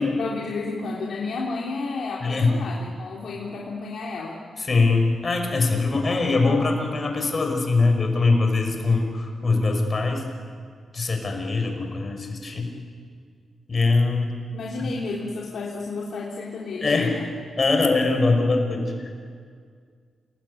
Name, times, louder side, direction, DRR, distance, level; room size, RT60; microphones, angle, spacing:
voice 1, 0.0-4.4 14.5-17.2, left 3 dB, 75° left, -3 dB, 3.2 m, -31 dB
voice 2, 2.2-2.6 4.6-10.2 10.9-12.7 13.7-14.3 16.8-17.1 17.6-19.1, left 3 dB, 40° left, 3 dB, 5.4 m, -22 dB
28.0 x 21.0 x 9.8 m, 2.1 s
cardioid pair, 105°, 0 cm